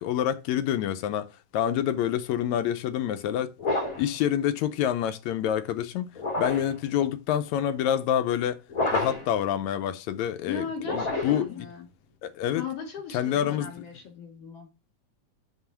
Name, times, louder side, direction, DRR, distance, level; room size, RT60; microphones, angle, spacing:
voice 1, 0.0-3.6 4.0-6.1 6.4-8.6 8.9-11.7 12.2-12.7 13.1-13.7, left 10 dB, 75° left, 1.9 m, -27 dB
sound 1, 3.6-4.1 6.1-6.8 8.7-9.4 10.8-11.5, left 2 dB, 30° left, 2.9 m, -29 dB
voice 2, 10.4-11.9 12.5-14.7, left 5 dB, 55° left, 3.4 m, -38 dB
6.0 x 5.6 x 5.6 m
omnidirectional pair, 3.5 m